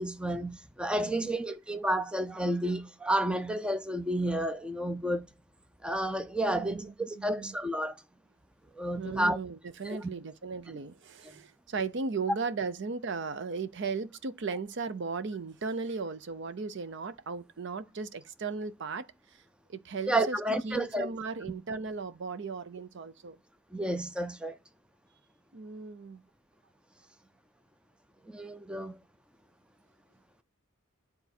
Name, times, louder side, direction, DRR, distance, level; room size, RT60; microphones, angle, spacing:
voice 1, 0.0-5.3 5.8-8.0 8.8-9.4 9.8-10.1 20.1-21.1 23.7-24.6 28.3-29.0, right 1 dB, 5° right, 0.4 m, -31 dB
voice 2, 0.9-1.3 6.5-7.5 8.9-19.4 19.7-20.4 20.6-23.4 25.5-26.2, right 4 dB, 55° right, 0.5 m, -36 dB
9.4 x 3.9 x 4.2 m
head